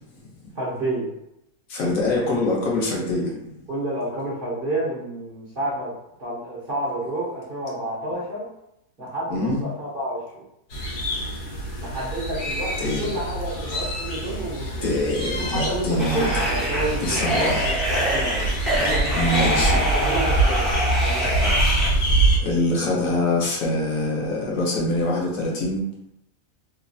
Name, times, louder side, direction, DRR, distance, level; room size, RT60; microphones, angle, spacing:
voice 1, 0.5-1.1 3.7-5.9 6.2-8.5 9.0-10.4 11.8-14.8 15.4-18.3 18.8-20.7 21.0-21.5, right 1 dB, 50° right, -8 dB, 0.7 m, -29 dB
voice 2, 1.7-3.5 9.3-9.6 12.8-13.1 14.8-16.3 17.0-17.5 19.2-19.8 22.4-25.9, left 2 dB, 65° left, -3 dB, 1.1 m, -24 dB
sound 1, 10.7-22.4, right 2 dB, 85° left, 1.3 m, -25 dB
sound 2, 16.0-21.9, equal, ahead, 0.3 m, -25 dB
3.1 x 2.4 x 2.5 m, 0.82 s
omnidirectional pair, 1.6 m